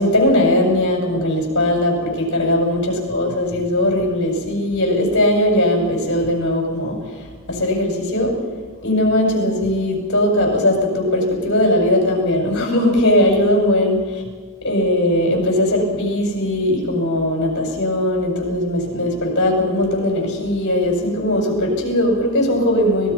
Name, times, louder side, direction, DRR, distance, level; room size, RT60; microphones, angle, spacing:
voice 1, 0.0-8.4 8.8-14.2 14.6-23.1, left 1 dB, 55° left, 1 dB, 6.8 m, -19 dB
25.0 x 20.0 x 5.8 m, 1.4 s
head